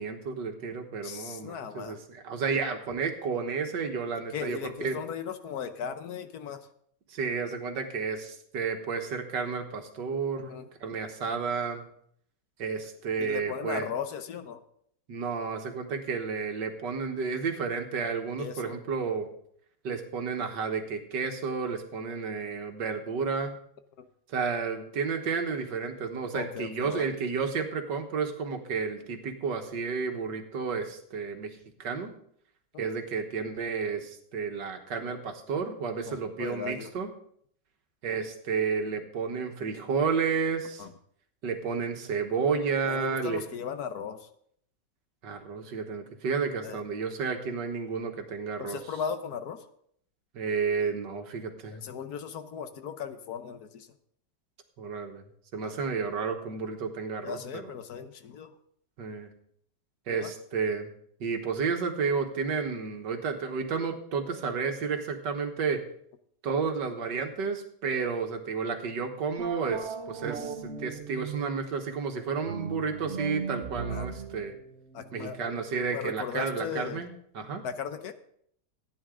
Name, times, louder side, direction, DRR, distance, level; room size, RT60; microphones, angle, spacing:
voice 1, 0.0-5.0 7.1-10.6 10.8-11.8 12.6-13.9 15.1-19.3 19.8-23.6 24.3-32.1 32.8-37.1 38.0-40.9 41.4-43.4 45.2-48.8 50.3-51.8 54.8-55.2 55.5-57.7 59.0-59.3 60.1-60.9 61.2-65.8 66.4-74.5 75.1-77.6, right 5 dB, 75° right, 5 dB, 1.9 m, -31 dB
voice 2, 1.0-2.0 4.3-6.7 10.4-10.7 13.2-14.6 18.4-18.8 24.0-24.1 26.3-27.1 32.7-32.9 36.1-36.9 40.8-40.9 42.8-44.3 46.6-46.8 48.6-49.6 51.7-53.9 55.6-55.7 57.2-58.5 60.1-60.3 73.9-74.2 74.9-75.4 75.9-77.1 77.6-78.1, left 7 dB, 65° left, 10 dB, 1.3 m, -37 dB
sound 1, 69.4-71.7 72.4-75.8, right 5 dB, 50° right, 1.1 m, -38 dB
15.0 x 9.6 x 3.8 m, 0.66 s
omnidirectional pair, 1.9 m